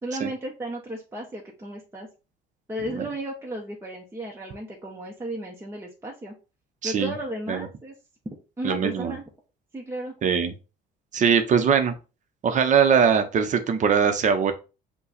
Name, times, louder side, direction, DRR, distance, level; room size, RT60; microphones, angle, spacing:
voice 1, 0.0-2.1 2.7-6.3 6.8-8.0 8.6-9.2 9.7-10.1, right 1 dB, 15° right, -1 dB, 0.9 m, -34 dB
voice 2, 6.8-7.1 7.5-7.7 8.6-9.2 10.2-10.5 11.1-11.9 12.4-14.5, right 6 dB, 45° right, 8 dB, 0.8 m, -21 dB
5.6 x 2.3 x 4.0 m, 0.32 s
cardioid pair, 110°, 17 cm